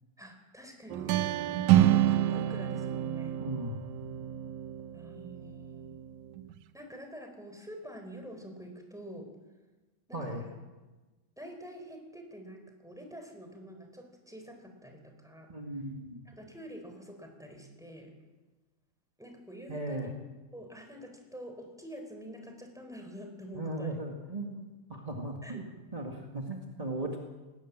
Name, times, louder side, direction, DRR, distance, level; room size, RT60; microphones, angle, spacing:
voice 1, 0.2-3.4 4.9-6.0 6.7-9.3 10.1-10.6 11.4-15.5 16.3-18.1 19.2-20.1 20.5-24.0 25.4-25.6, equal, ahead, 3 dB, 3.7 m, -46 dB
sound 1, 0.9-6.6, right 12 dB, 80° right, 1.7 m, -28 dB
voice 2, 3.4-3.8 10.1-10.4 15.5-16.2 19.7-20.1 23.5-25.6 25.9-27.2, right 1 dB, 25° right, 1 dB, 0.7 m, -37 dB
19.5 x 19.0 x 7.6 m, 1.2 s
omnidirectional pair, 4.2 m